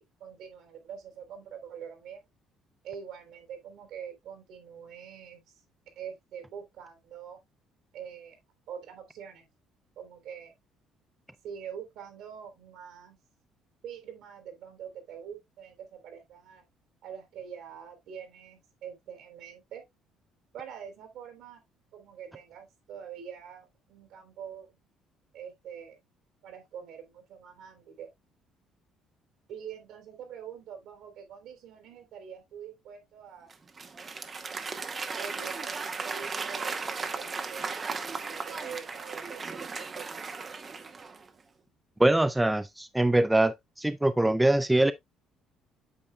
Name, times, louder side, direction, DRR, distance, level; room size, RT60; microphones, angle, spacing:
voice 1, 0.0-2.2 2.8-5.4 6.0-7.4 7.9-8.4 8.7-9.5 10.0-10.5 11.4-13.2 13.8-16.6 17.0-19.8 20.5-21.6 21.9-24.8 25.3-26.0 26.4-28.1 29.5-33.5 35.1-37.9 38.2-40.2, right 8 dB, 75° right, 3.6 m, -44 dB
Applause / Crowd, 33.5-41.3, right 4 dB, 30° right, 0.9 m, -36 dB
voice 2, 42.0-44.9, right 1 dB, 5° right, 0.4 m, -23 dB
8.6 x 6.5 x 2.3 m
cardioid pair, 135°, 0 cm